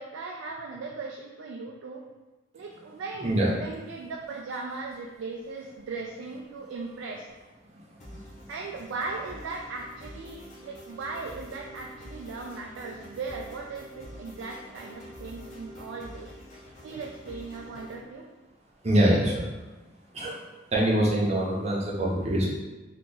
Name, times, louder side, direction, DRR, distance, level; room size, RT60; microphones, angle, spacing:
voice 1, 0.0-2.0 2.5-7.3 8.5-16.3 16.8-18.3, right 3 dB, 75° right, 0 dB, 0.3 m, -38 dB
voice 2, 3.2-3.5 7.7-8.2 18.8-19.4 20.1-20.4 20.7-22.5, right 1 dB, 30° right, -3 dB, 0.6 m, -24 dB
sound 1, 8.0-18.0, equal, 40° left, 0.7 m, -46 dB
2.8 x 2.3 x 3.7 m, 1.2 s
head